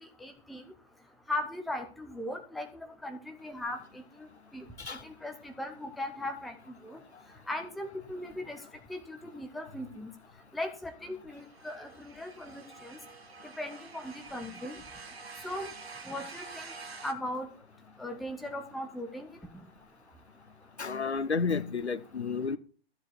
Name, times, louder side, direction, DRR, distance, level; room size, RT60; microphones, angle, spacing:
voice 1, 0.2-0.7 1.3-4.0 4.5-4.6 4.9-6.5 6.8-7.0 7.5-8.6 8.9-10.1 10.5-13.0 13.6-14.7 15.4-15.7 16.1-16.7 17.0-17.5 18.0-19.3, left 1 dB, ahead, 0.5 m, -38 dB
sound 1, 11.4-17.1, right 4 dB, 70° right, 1.5 m, -47 dB
voice 2, 20.8-22.6, left 5 dB, 80° left, 0.9 m, -31 dB
13.5 x 7.2 x 4.6 m
figure-of-eight pair, 115°, 33 cm